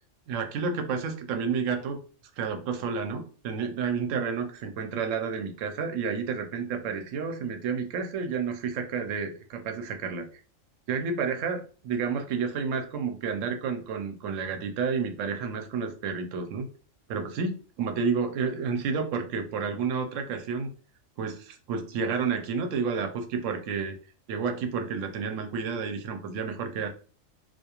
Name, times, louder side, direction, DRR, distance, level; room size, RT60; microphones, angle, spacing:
voice 1, 0.3-2.0 2.4-10.3 10.9-16.7 17.1-20.7 21.2-24.0 24.3-26.9, right 5 dB, 75° right, 6 dB, 0.9 m, -30 dB
2.4 x 2.3 x 2.9 m, 0.39 s
omnidirectional pair, 1.3 m